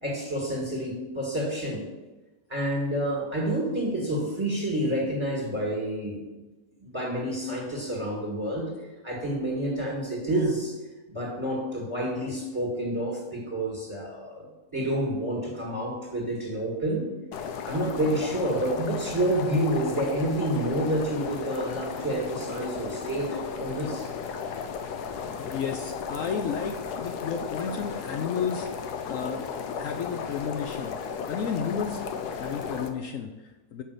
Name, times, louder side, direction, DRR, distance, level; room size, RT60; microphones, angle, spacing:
voice 1, 0.0-1.9 2.5-6.2 6.8-8.7 9.0-10.8 11.1-14.5 14.7-17.1 17.7-24.1, right 1 dB, 20° right, -3 dB, 1.8 m, -29 dB
sound 1, 17.3-32.9, left 6 dB, 90° left, 1.3 m, -35 dB
voice 2, 25.4-28.7 29.1-29.4 29.8-31.0 31.3-32.0 32.3-33.8, left 6 dB, 65° left, 5 dB, 0.9 m, -32 dB
5.7 x 5.6 x 6.6 m, 1.1 s
omnidirectional pair, 1.6 m